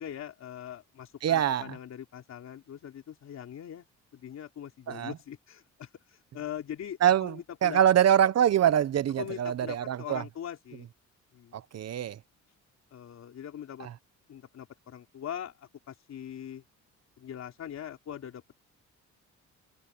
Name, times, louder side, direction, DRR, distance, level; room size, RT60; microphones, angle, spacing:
voice 1, 0.0-3.9 4.1-7.8 9.2-10.9 11.3-11.6 12.9-13.9 14.3-16.6 17.2-18.5, left 10 dB, 60° left, 3.6 m, -42 dB
voice 2, 1.2-1.8 4.9-5.2 7.0-10.2 11.5-12.2 13.8-13.9, right 10 dB, 55° right, 1.1 m, -25 dB
cardioid pair, 90°, 30 cm